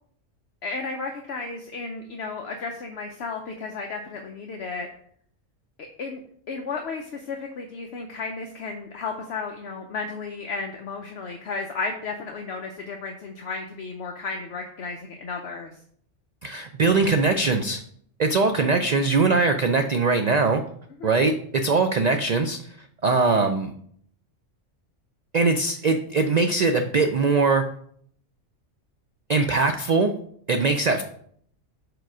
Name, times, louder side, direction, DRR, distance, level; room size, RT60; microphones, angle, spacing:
voice 1, 0.6-4.9 6.0-6.2 6.5-15.8 21.0-21.1, left 4 dB, 60° left, 3 dB, 0.9 m, -33 dB
voice 2, 16.4-17.8 18.2-20.6 21.0-22.6 23.0-23.7 25.3-27.7 29.3-30.1 30.5-31.0, right 3 dB, 80° right, 7 dB, 0.3 m, -21 dB
5.0 x 4.5 x 5.9 m, 0.63 s
omnidirectional pair, 1.3 m